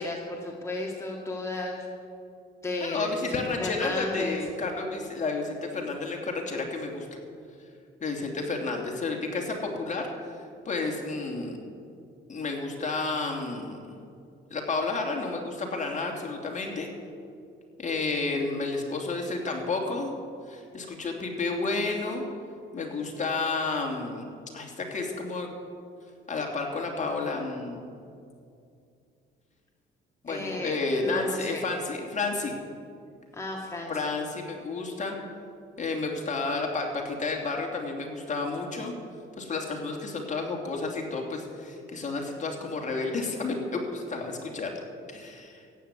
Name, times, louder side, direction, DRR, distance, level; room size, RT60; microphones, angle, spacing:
voice 1, 0.0-1.9 2.6-4.4 30.3-31.6 33.3-33.9, left 2 dB, 15° left, -2 dB, 2.1 m, -33 dB
voice 2, 2.8-7.1 8.0-10.4 10.6-11.6 12.3-14.0 14.5-16.9 17.8-20.1 20.5-22.2 22.7-24.2 24.5-25.5 26.3-27.9 30.2-32.6 33.9-35.2 35.8-39.0 39.4-44.7 45.1-45.6, left 3 dB, 40° left, 1 dB, 2.9 m, -31 dB
15.0 x 9.5 x 8.3 m, 2.4 s
cardioid pair, 90°, 20 cm